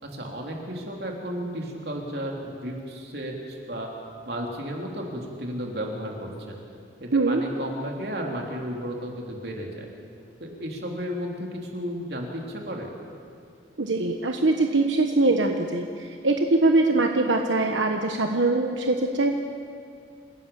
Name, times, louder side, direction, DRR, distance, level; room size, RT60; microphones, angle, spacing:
voice 1, 0.0-3.9 4.3-6.5 7.0-9.9 10.4-12.9, equal, 60° right, 0 dB, 3.4 m, -33 dB
voice 2, 13.8-19.4, right 2 dB, 90° right, 4 dB, 1.2 m, -22 dB
28.0 x 16.5 x 7.1 m, 2.4 s
head